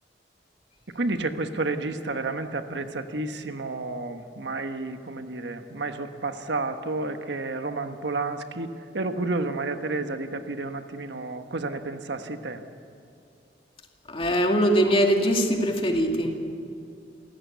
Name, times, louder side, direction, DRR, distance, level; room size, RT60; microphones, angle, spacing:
voice 1, 0.9-12.6, right 3 dB, 85° right, 7 dB, 1.3 m, -31 dB
voice 2, 14.1-16.3, equal, 30° left, 2 dB, 2.3 m, -22 dB
28.0 x 15.0 x 8.1 m, 2.4 s
head